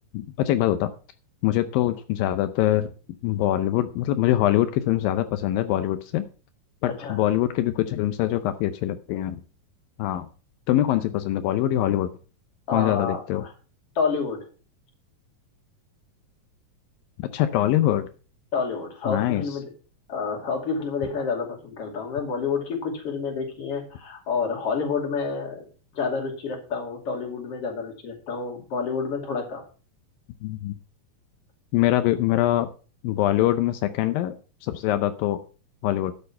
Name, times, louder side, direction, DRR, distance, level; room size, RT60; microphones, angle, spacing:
voice 1, 0.1-0.9 1.4-2.9 3.2-6.3 6.8-9.4 10.0-10.3 10.7-12.1 12.7-13.4 17.2-18.1 19.1-19.4 30.4-30.8 31.7-32.7 33.0-34.3 34.6-35.4 35.8-36.1, left 13 dB, 85° left, 10 dB, 2.5 m, -23 dB
voice 2, 6.9-7.2 12.7-13.5 13.9-14.4 18.5-19.7 20.1-25.6 25.9-29.6, left 5 dB, 45° left, 2 dB, 3.3 m, -29 dB
12.0 x 6.6 x 5.6 m, 0.36 s
omnidirectional pair, 4.0 m